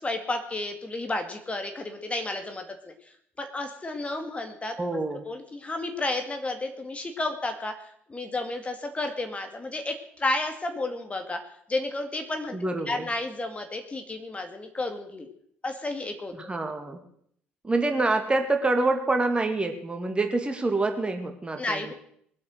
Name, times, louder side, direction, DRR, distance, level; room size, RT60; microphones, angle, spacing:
voice 1, 0.0-2.9 3.4-5.0 5.2-7.7 8.1-11.4 11.7-12.6 12.9-15.3 15.6-16.3 21.6-21.9, left 2 dB, 20° left, 5 dB, 2.2 m, -32 dB
voice 2, 4.8-5.2 12.5-13.1 16.4-17.0 17.6-21.9, right 2 dB, 20° right, 5 dB, 2.5 m, -26 dB
21.5 x 8.5 x 6.5 m, 0.67 s
figure-of-eight pair, 50°, 6 cm